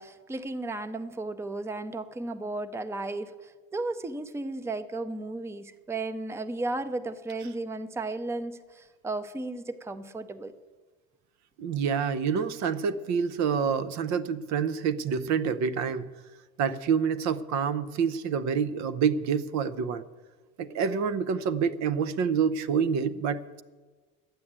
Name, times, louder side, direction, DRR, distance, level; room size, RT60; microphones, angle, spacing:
voice 1, 0.0-10.5, right 2 dB, 10° right, 13 dB, 0.6 m, -34 dB
voice 2, 11.6-16.1 16.6-20.0 20.6-23.6, right 6 dB, 55° right, 15 dB, 0.7 m, -27 dB
12.5 x 8.7 x 8.7 m, 1.4 s
cardioid pair, 120°, 33 cm